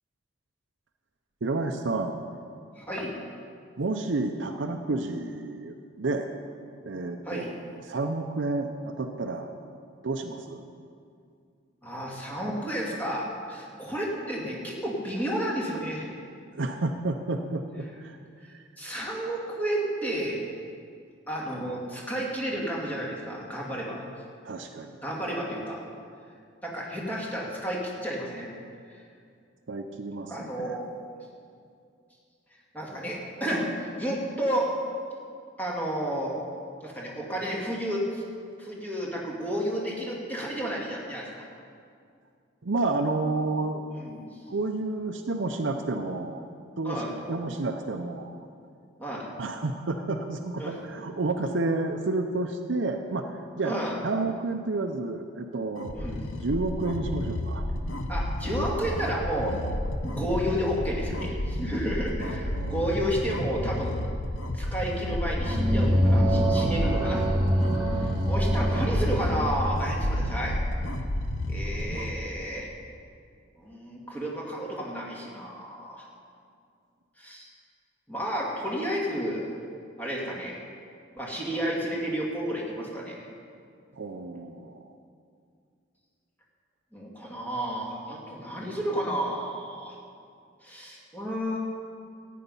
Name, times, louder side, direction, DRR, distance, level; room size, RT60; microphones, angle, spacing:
voice 1, 1.4-2.2 3.8-6.3 6.8-7.4 7.8-9.5 10.0-10.7 16.5-18.2 18.5-18.6 24.4-25.0 29.7-30.8 42.6-43.8 44.5-46.4 46.8-47.0 47.3-48.3 49.4-55.9 56.4-57.7 62.2-62.9 83.9-84.9, right 2 dB, 65° right, 5 dB, 0.6 m, -30 dB
voice 2, 2.8-3.1 7.3-7.5 11.8-16.1 18.5-20.4 21.3-24.0 25.0-25.8 26.6-28.5 28.9-29.0 30.3-30.9 32.7-33.7 34.0-34.7 35.6-36.3 36.8-38.2 38.6-41.4 43.9-44.4 46.8-47.1 49.0-49.3 50.6-50.8 53.6-54.0 55.9-56.2 58.1-59.6 60.0-64.0 64.5-70.6 71.5-72.7 73.5-76.1 77.2-77.5 78.1-79.5 80.0-80.6 81.1-83.3 86.9-90.0 90.6-91.6, equal, 10° left, -3 dB, 2.2 m, -31 dB
sound 1, 55.8-72.2, left 1 dB, 80° left, 1.0 m, -31 dB
sound 2, 65.1-69.8, equal, 25° right, 2.2 m, -25 dB
14.0 x 9.3 x 5.5 m, 2.3 s
head